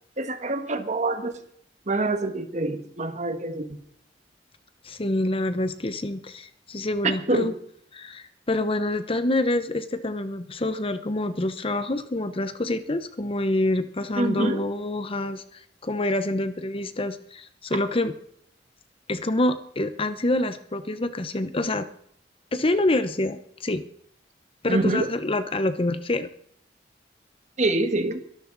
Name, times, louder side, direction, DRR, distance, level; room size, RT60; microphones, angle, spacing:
voice 1, 0.2-1.4 1.9-3.7 7.0-7.5 14.1-14.6 24.7-25.1 27.6-28.2, right 2 dB, 40° right, 8 dB, 1.5 m, -25 dB
voice 2, 4.8-7.5 7.9-18.1 19.1-21.9 22.5-23.8 24.6-26.3, left 1 dB, 30° left, 11 dB, 0.9 m, -26 dB
23.0 x 13.0 x 4.0 m, 0.67 s
head